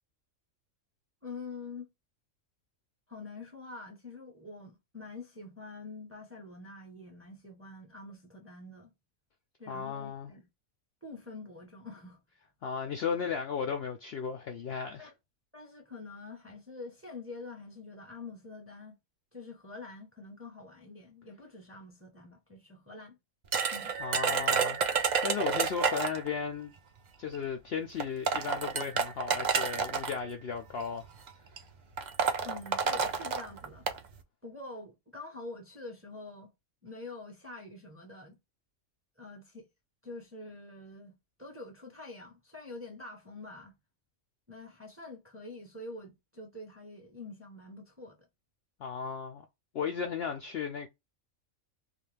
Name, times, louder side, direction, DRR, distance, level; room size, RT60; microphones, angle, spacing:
voice 1, 1.2-1.9 3.1-8.9 9.6-10.5 11.0-12.2 15.0-15.1 15.5-18.9 19.3-23.2 23.7-23.9 32.4-33.9 34.4-36.5 36.8-38.4 39.2-39.7 40.0-41.1 41.4-43.7 44.5-48.2, left 3 dB, 15° right, 0.6 m, -46 dB
voice 2, 9.7-10.3 12.6-15.1 24.0-26.7 27.2-31.0 48.8-49.5 49.7-50.9, left 6 dB, 65° left, 0.6 m, -35 dB
sound 1, 23.5-26.3 27.3-27.4 28.0-30.1 31.0-31.3 31.6-31.7 32.0-34.0, right 6 dB, 75° right, 0.4 m, -29 dB
2.4 x 2.3 x 3.2 m
omnidirectional pair, 1.4 m